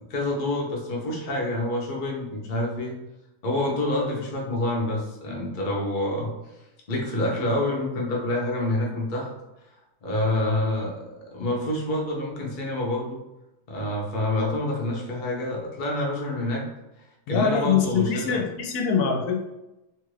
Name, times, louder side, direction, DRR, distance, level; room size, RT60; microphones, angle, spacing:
voice 1, 0.1-2.9 3.4-6.3 6.9-9.3 10.0-11.0 11.3-13.2 13.7-16.6 17.3-18.4, left 1 dB, 45° left, -2 dB, 0.7 m, -27 dB
voice 2, 17.3-19.4, left 6 dB, 85° left, 2 dB, 1.1 m, -23 dB
3.0 x 2.4 x 3.1 m, 0.95 s
omnidirectional pair, 1.6 m